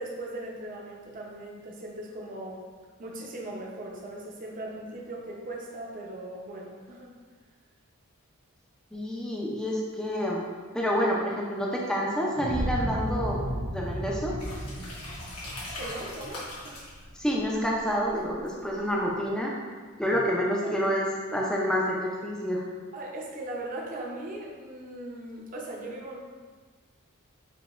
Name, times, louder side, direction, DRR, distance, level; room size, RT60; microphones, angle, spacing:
voice 1, 0.0-2.6 3.0-7.1 15.8-16.8 20.6-20.8 22.9-26.2, right 1 dB, 40° right, -2 dB, 0.7 m, -39 dB
voice 2, 8.9-10.5 10.7-13.4 13.7-14.3 17.2-19.5 20.0-22.6, equal, 5° left, -3 dB, 0.5 m, -28 dB
sound 1, 12.4-17.1, equal, 80° right, 1.3 m, -33 dB
sound 2, 14.4-19.0, left 2 dB, 90° left, 1.3 m, -42 dB
7.0 x 2.8 x 2.5 m, 1.5 s
head